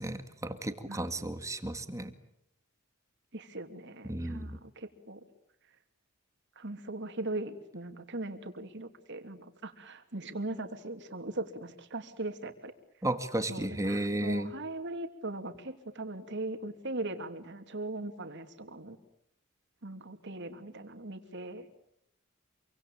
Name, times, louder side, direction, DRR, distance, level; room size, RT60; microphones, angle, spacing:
voice 1, 0.0-2.1 4.0-4.6 13.0-14.5, right 1 dB, 15° right, 8 dB, 2.0 m, -33 dB
voice 2, 3.3-5.2 6.6-12.7 13.5-19.0 19.8-21.7, right 2 dB, 55° right, 7 dB, 3.0 m, -39 dB
27.5 x 25.0 x 8.8 m, 0.75 s
head